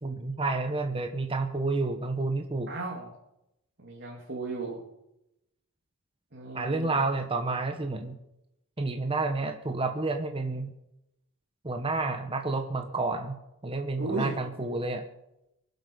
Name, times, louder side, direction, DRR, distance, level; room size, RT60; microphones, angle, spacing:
voice 1, 0.0-2.7 6.5-8.2 8.8-10.7 11.6-15.0, right 3 dB, 25° right, 6 dB, 1.0 m, -30 dB
voice 2, 2.7-3.1 3.8-4.8 6.3-7.0 14.0-14.4, right 3 dB, 50° right, -2 dB, 2.6 m, -35 dB
23.5 x 8.0 x 5.5 m, 0.86 s
head